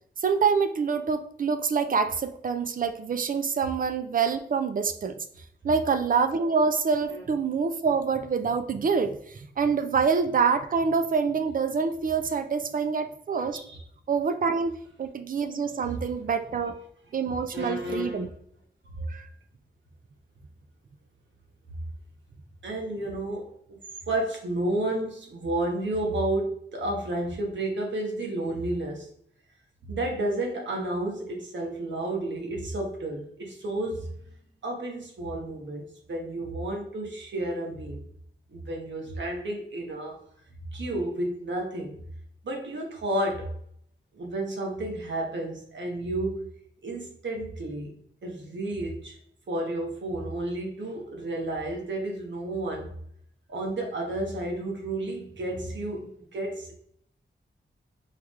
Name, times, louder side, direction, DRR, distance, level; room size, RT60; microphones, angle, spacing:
voice 1, 0.2-5.1 5.6-13.6 14.1-16.7 17.1-18.3 19.1-19.3, right 5 dB, 50° right, 9 dB, 0.4 m, -26 dB
voice 2, 17.3-18.3 18.9-19.1 22.6-23.8 24.1-29.1 29.8-34.1 34.6-38.0 38.5-40.2 40.7-42.0 42.4-43.5 44.1-46.5 46.8-48.0 48.2-49.2 49.5-53.0 53.5-56.7, right 1 dB, 80° right, 0 dB, 1.2 m, -31 dB
4.7 x 3.6 x 3.1 m, 0.65 s
wide cardioid pair, 155°, 19 cm